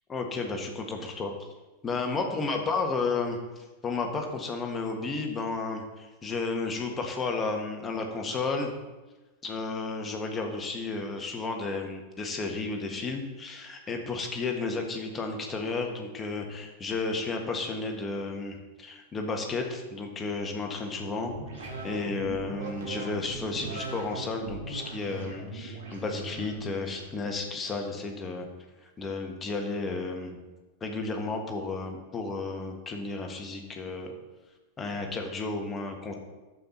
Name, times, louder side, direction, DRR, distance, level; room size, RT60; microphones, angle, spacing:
voice 1, 0.1-1.3 1.8-8.7 9.4-28.5 29.0-30.4 30.8-34.1 34.8-36.1, left 3 dB, 20° left, 3 dB, 1.6 m, -32 dB
sound 1, 20.8-27.2, right 3 dB, 60° right, 1.9 m, -40 dB
10.5 x 7.6 x 4.2 m, 1.2 s
figure-of-eight pair, 90°, 0 cm